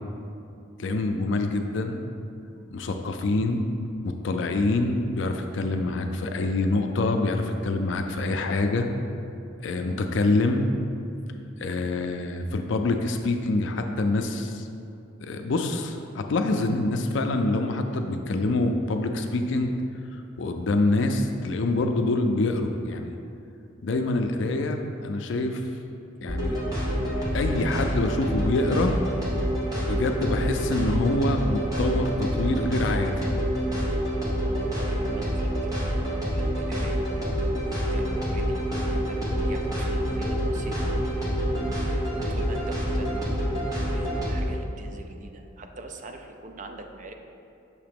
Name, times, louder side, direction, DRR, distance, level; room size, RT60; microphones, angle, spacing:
voice 1, 0.8-2.0 2.7-3.7 4.0-8.9 9.6-10.6 11.6-14.7 15.2-19.7 20.4-23.1 23.8-25.6 26.2-26.6 27.3-28.9 29.8-33.3, left 2 dB, 65° left, 5 dB, 0.4 m, -26 dB
sound 1, 26.3-44.4, equal, 20° right, 1.1 m, -27 dB
voice 2, 34.4-36.0 36.3-37.0 37.6-41.3 41.9-43.3 43.7-47.1, right 2 dB, 40° right, 5 dB, 0.4 m, -43 dB
6.5 x 2.9 x 5.2 m, 2.6 s
head